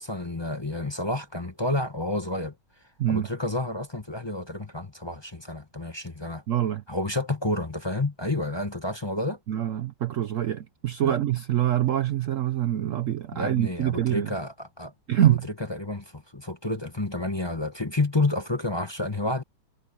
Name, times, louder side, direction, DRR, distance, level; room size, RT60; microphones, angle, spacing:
voice 1, 0.0-2.5 3.1-6.4 6.9-9.4 11.0-11.2 11.8-11.9 13.3-14.9 15.2-19.4, left 2 dB, 20° left, 1.0 m, -30 dB
voice 2, 6.5-6.8 9.5-14.3 15.1-15.4, right 12 dB, 65° right, 0.8 m, -25 dB
omnidirectional pair, 1.8 m